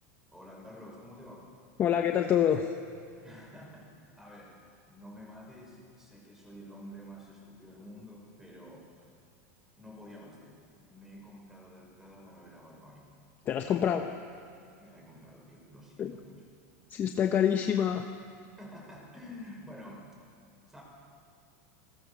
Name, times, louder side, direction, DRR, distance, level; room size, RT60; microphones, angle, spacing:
voice 1, 0.3-1.5 3.2-4.6 4.9-9.1 9.8-13.1 14.8-16.4 18.5-20.2 20.7-20.8, equal, 5° right, -1 dB, 5.6 m, -49 dB
voice 2, 1.8-2.7 13.5-14.1 16.0-16.2 16.9-18.1, left 9 dB, 25° left, 5 dB, 0.9 m, -26 dB
27.5 x 22.0 x 7.0 m, 2.3 s
supercardioid pair, 165°, 9 cm